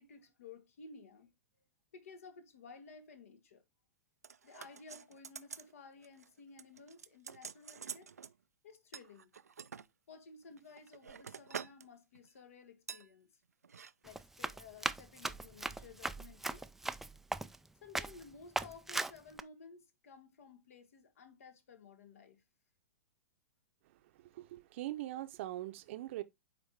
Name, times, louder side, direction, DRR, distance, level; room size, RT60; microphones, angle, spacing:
voice 1, 0.0-1.3 1.9-3.6 4.4-8.1 8.6-9.3 10.1-13.3 14.0-16.6 17.8-22.4, left 4 dB, 60° left, 1.4 m, -55 dB
sound 1, 4.2-5.7 6.0-6.3 6.6-8.3 8.9-9.9 10.5-11.9 12.1-12.4 12.9-13.1 13.6-13.9 14.2-14.3, right 6 dB, 80° right, 0.4 m, -47 dB
Run, 14.1-17.7 18.0-18.2 18.6-19.4, right 2 dB, 5° right, 0.4 m, -38 dB
voice 2, 24.3-26.2, right 15 dB, 50° right, 0.8 m, -41 dB
9.1 x 3.5 x 3.4 m
figure-of-eight pair, 105°, 8 cm